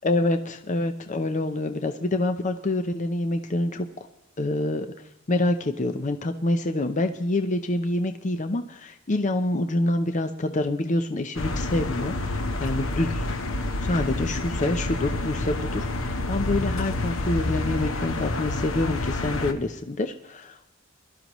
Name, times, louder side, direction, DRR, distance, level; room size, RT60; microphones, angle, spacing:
voice 1, 0.0-3.9 4.4-4.9 5.3-13.3 13.8-20.7, left 2 dB, 40° left, 7 dB, 0.6 m, -26 dB
sound 1, 11.4-19.5, left 2 dB, 85° left, 1.0 m, -28 dB
21.5 x 12.5 x 3.1 m, 0.88 s
head